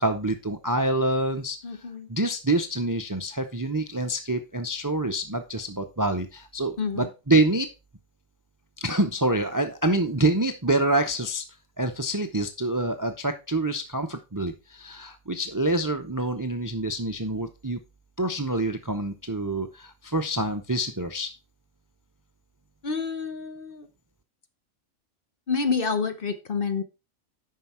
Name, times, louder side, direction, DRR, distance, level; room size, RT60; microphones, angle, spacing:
voice 1, 0.0-1.6 2.1-7.7 8.8-11.4 11.8-17.8 18.2-21.3, right 2 dB, 20° right, 8 dB, 0.5 m, -26 dB
voice 2, 1.6-2.1 6.8-7.1 22.8-23.9 25.5-26.8, left 5 dB, 45° left, 9 dB, 1.1 m, -28 dB
9.3 x 5.7 x 4.3 m, 0.28 s
omnidirectional pair, 1.3 m